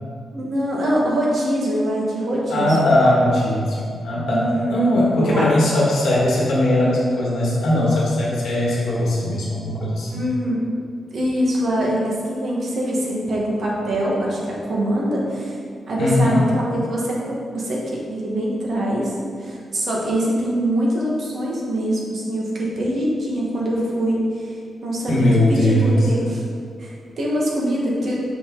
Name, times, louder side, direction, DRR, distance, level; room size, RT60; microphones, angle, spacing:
voice 1, 0.3-2.9 4.3-4.8 5.2-5.5 10.1-10.8 11.1-15.5 15.9-19.1 19.4-24.5 24.8-26.4 26.8-28.2, equal, 50° right, -4 dB, 1.4 m, -23 dB
voice 2, 2.5-10.2 16.0-16.4 25.1-26.1, left 1 dB, 80° left, -5 dB, 1.6 m, -19 dB
5.7 x 5.3 x 3.9 m, 2.2 s
wide cardioid pair, 170°, 0 cm